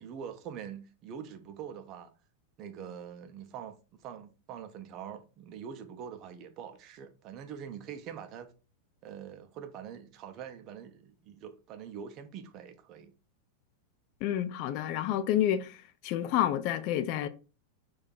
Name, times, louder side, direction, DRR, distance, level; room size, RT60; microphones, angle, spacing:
voice 1, 0.0-2.1 2.6-8.5 9.0-13.1, right 8 dB, 35° right, 0.4 m, -44 dB
voice 2, 14.2-15.8 16.0-17.3, left 11 dB, 45° left, 0.3 m, -29 dB
2.6 x 2.3 x 3.7 m
figure-of-eight pair, 90°, 0 cm